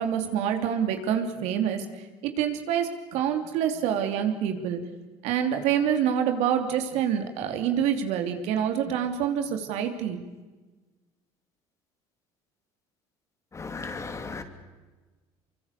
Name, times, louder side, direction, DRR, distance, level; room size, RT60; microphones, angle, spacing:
voice 1, 0.0-4.8 5.2-10.2, right 9 dB, 75° right, 6 dB, 3.1 m, -27 dB
voice 2, 13.6-14.4, left 4 dB, 25° left, 8 dB, 2.9 m, -35 dB
24.5 x 24.5 x 6.8 m, 1.3 s
supercardioid pair, 100°, 11 cm